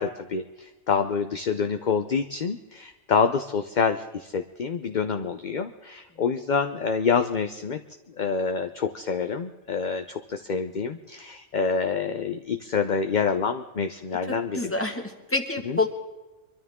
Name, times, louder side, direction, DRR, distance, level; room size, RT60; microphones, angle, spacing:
voice 1, 0.0-7.8 8.2-14.7 15.7-15.8, left 5 dB, 45° left, 7 dB, 0.7 m, -27 dB
voice 2, 14.1-15.9, left 3 dB, 10° left, 4 dB, 1.6 m, -28 dB
24.5 x 13.0 x 3.6 m, 1.1 s
omnidirectional pair, 1.4 m